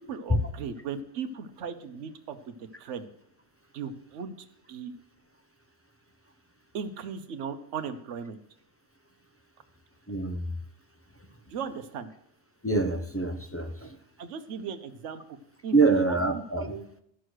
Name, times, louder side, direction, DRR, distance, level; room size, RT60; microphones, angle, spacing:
voice 1, 0.1-3.1 3.7-4.9 6.7-8.4 11.5-12.1 14.2-15.2 15.6-17.0, right 6 dB, 75° right, 8 dB, 1.1 m, -37 dB
voice 2, 10.1-10.6 12.6-14.0 15.7-16.8, right 3 dB, 15° left, 5 dB, 0.5 m, -25 dB
12.5 x 6.3 x 6.3 m, 0.70 s
omnidirectional pair, 1.3 m